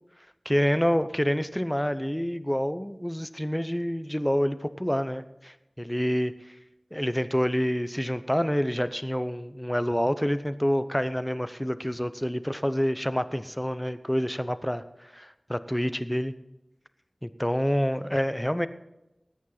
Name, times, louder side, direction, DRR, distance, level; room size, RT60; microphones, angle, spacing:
voice 1, 0.4-6.3 6.9-16.3 17.2-18.7, equal, 10° left, 12 dB, 0.7 m, -27 dB
20.0 x 9.4 x 3.9 m, 0.93 s
wide cardioid pair, 55°, 0 cm